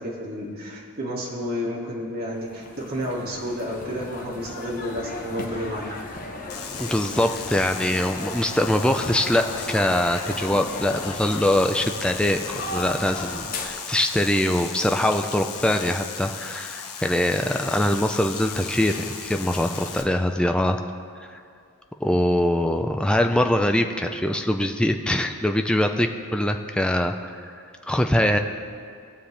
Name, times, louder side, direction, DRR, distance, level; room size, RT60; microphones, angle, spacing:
voice 1, 0.0-6.0, equal, 45° right, -5 dB, 2.2 m, -31 dB
sound 1, 2.3-13.7, left 2 dB, 40° left, 1.0 m, -36 dB
sound 2, 6.5-20.0, left 6 dB, 85° left, 1.1 m, -36 dB
voice 2, 6.8-12.4 12.7-20.8 21.3-21.4 22.0-27.3 27.9-28.4, left 1 dB, 5° left, 5 dB, 0.4 m, -23 dB
19.5 x 7.3 x 3.4 m, 2.3 s
head